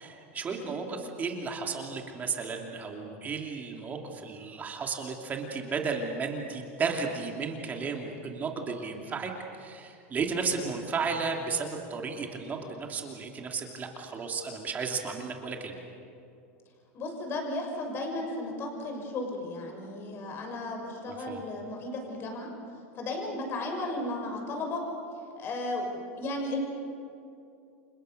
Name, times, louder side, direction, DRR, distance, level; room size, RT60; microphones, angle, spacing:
voice 1, 0.0-9.3 9.6-15.8 21.1-21.4, right 5 dB, 25° right, 2 dB, 2.9 m, -34 dB
voice 2, 16.9-22.5 23.0-24.8 25.4-26.6, left 2 dB, 35° left, 3 dB, 6.0 m, -34 dB
30.0 x 26.0 x 6.8 m, 2.6 s
supercardioid pair, 145°, 7 cm